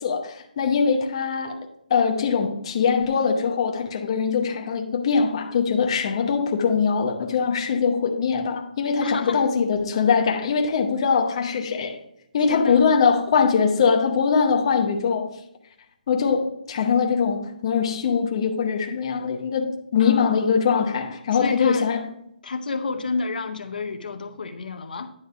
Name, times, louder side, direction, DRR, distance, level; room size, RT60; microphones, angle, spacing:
voice 1, 0.0-1.6 1.9-12.0 12.3-15.3 16.1-22.0, left 6 dB, 35° left, 0.8 m, -22 dB
voice 2, 9.0-9.5 12.5-12.9 20.0-20.6 21.3-21.9 22.4-25.1, left 4 dB, 75° left, 0.7 m, -30 dB
9.7 x 3.3 x 5.5 m
hypercardioid pair, 170°, 5 cm